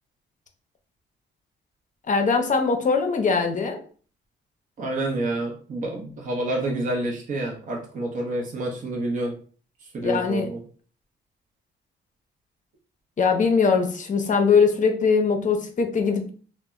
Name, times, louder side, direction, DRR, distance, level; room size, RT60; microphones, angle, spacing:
voice 1, 2.1-3.8 10.0-10.5 13.2-16.3, left 5 dB, 40° left, 4 dB, 0.6 m, -21 dB
voice 2, 4.8-9.3 9.8-10.6, right 2 dB, 40° right, 0 dB, 0.6 m, -28 dB
2.1 x 2.0 x 3.5 m, 0.42 s
cardioid pair, 90°, 20 cm